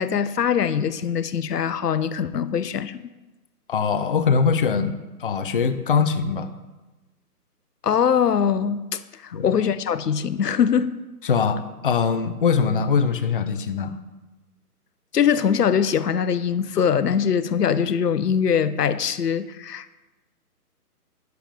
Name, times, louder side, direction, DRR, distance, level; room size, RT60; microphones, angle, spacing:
voice 1, 0.0-3.0 7.8-10.9 15.1-20.0, left 7 dB, 80° left, 0.8 m, -22 dB
voice 2, 3.7-4.9 5.2-6.5 9.3-9.5 11.2-14.0, left 6 dB, 35° left, 0.6 m, -22 dB
12.5 x 9.1 x 3.5 m
hypercardioid pair, 155°, 46 cm